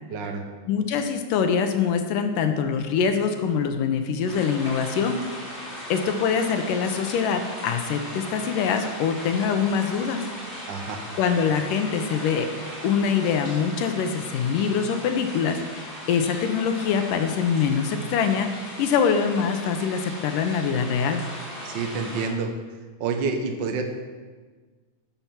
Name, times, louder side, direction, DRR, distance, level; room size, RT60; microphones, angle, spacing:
voice 1, 0.1-0.4 10.7-11.0 21.6-22.5 23.0-23.8, right 4 dB, 75° right, 4 dB, 1.0 m, -28 dB
voice 2, 0.7-5.2 5.6-10.2 11.2-12.5 12.8-21.2, left 6 dB, 80° left, 7 dB, 2.5 m, -24 dB
sound 1, 4.3-22.3, left 1 dB, 20° left, 3.5 m, -38 dB
13.0 x 6.9 x 6.0 m, 1.4 s
omnidirectional pair, 3.8 m